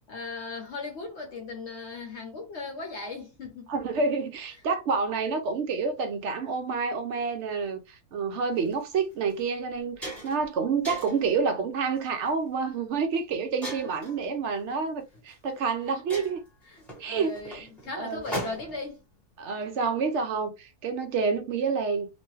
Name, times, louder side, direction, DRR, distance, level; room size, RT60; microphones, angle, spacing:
voice 1, 0.0-3.9 14.0-14.2 15.9-16.0 16.7-19.0, left 3 dB, 55° left, 1.0 m, -38 dB
voice 2, 3.7-16.4 17.0-17.7 17.9-18.2 19.4-22.1, right 5 dB, 65° right, 0.7 m, -28 dB
sound 1, 8.6-8.7 9.3-9.4 9.7-10.5 10.8-11.3 12.0-12.3 13.6-14.2 15.3-15.4 15.7-15.8 16.1-18.9, equal, ahead, 0.8 m, -38 dB
2.9 x 2.2 x 3.1 m
omnidirectional pair, 1.6 m